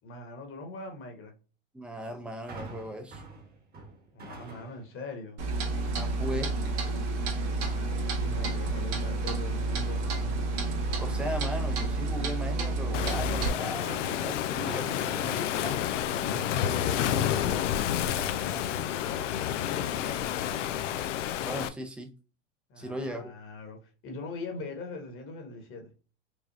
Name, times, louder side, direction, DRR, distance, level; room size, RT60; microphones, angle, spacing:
voice 1, 0.0-1.3 4.1-5.4 7.5-10.4 15.1-15.3 16.0-20.7 22.7-25.9, left 2 dB, 35° left, 1.3 m, -42 dB
voice 2, 1.7-3.2 5.9-6.5 11.0-15.9 21.4-22.1 22.8-23.3, equal, 5° right, 0.6 m, -37 dB
sound 1, 2.5-5.0 5.5-5.9 8.3-9.0 9.5-12.3 13.8-15.8 16.1-16.2, right 3 dB, 25° right, 1.4 m, -49 dB
Clock, 5.4-13.5, right 3 dB, 65° right, 1.6 m, -30 dB
Waves surf, 12.9-21.7, left 10 dB, 85° left, 0.5 m, -30 dB
5.0 x 2.3 x 2.7 m
hypercardioid pair, 110°, 36 cm